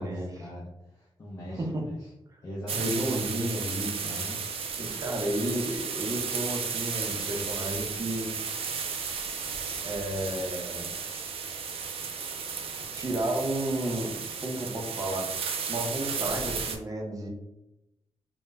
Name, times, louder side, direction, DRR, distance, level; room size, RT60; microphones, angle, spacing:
voice 1, 0.0-2.1 2.4-3.3 4.0-4.4, equal, 40° left, -6 dB, 0.5 m, -41 dB
voice 2, 2.7-4.1 4.8-8.3 9.8-10.9 12.9-14.1 14.4-15.3 15.7-17.3, right 1 dB, 35° right, 0 dB, 0.6 m, -32 dB
sound 1, 2.7-16.8, right 5 dB, 80° right, 0.4 m, -34 dB
2.1 x 2.0 x 3.3 m, 0.90 s
wide cardioid pair, 105°, 10 cm